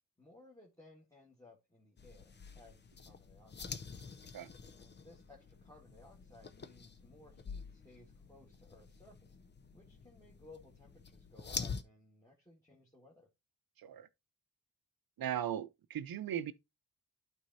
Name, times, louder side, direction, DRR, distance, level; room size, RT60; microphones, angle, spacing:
voice 1, 0.2-3.8 4.8-9.4 9.7-13.3, left 2 dB, 10° left, 1.7 m, -60 dB
sound 1, 2.0-11.8, left 5 dB, 30° left, 0.6 m, -47 dB
voice 2, 13.8-14.1 15.2-16.5, right 10 dB, 80° right, 0.8 m, -38 dB
11.5 x 4.4 x 2.7 m
wide cardioid pair, 115°, 35 cm